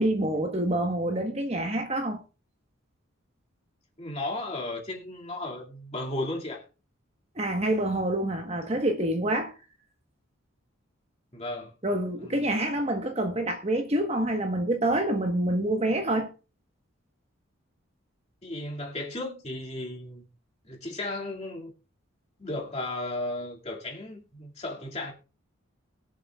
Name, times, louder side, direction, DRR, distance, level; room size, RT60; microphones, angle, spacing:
voice 1, 0.0-2.2 7.3-9.5 11.8-16.3, right 1 dB, 30° right, 1.3 m, -27 dB
voice 2, 4.0-6.6 11.3-11.7 12.2-12.5 18.4-20.3 20.6-21.7 22.4-25.1, left 2 dB, 30° left, 2.4 m, -35 dB
22.0 x 7.5 x 2.4 m
head